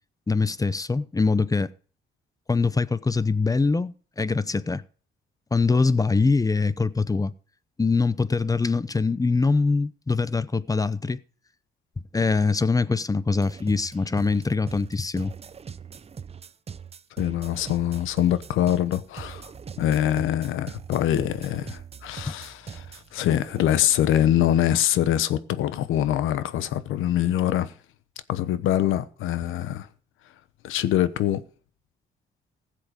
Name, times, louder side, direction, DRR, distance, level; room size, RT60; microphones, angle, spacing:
voice 1, 0.3-1.7 2.5-4.8 5.5-7.3 7.8-11.2 12.1-15.3 22.3-22.4, left 4 dB, 15° left, 0.7 m, -23 dB
sound 1, 13.3-24.4, right 6 dB, 30° right, 0.6 m, -42 dB
voice 2, 17.2-19.5 19.8-27.7 28.3-29.9 30.6-31.4, left 11 dB, 85° left, 1.0 m, -24 dB
15.5 x 7.7 x 5.1 m
cardioid pair, 90°, 20 cm